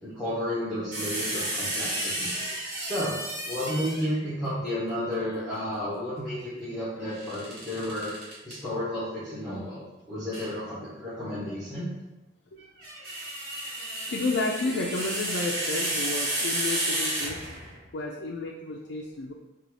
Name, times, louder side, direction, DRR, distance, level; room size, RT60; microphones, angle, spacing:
voice 1, 0.0-2.3 2.7-3.2 3.4-8.1 8.4-9.8 10.1-11.9, left 1 dB, ahead, -12 dB, 1.1 m, -32 dB
sound 1, 0.9-4.2 7.1-8.5 10.3-10.5 12.6-17.8, right 1 dB, 55° right, 1.4 m, -32 dB
voice 2, 14.1-17.5 17.9-19.3, left 3 dB, 75° left, -1 dB, 0.4 m, -31 dB
4.0 x 2.4 x 4.6 m, 1.0 s
head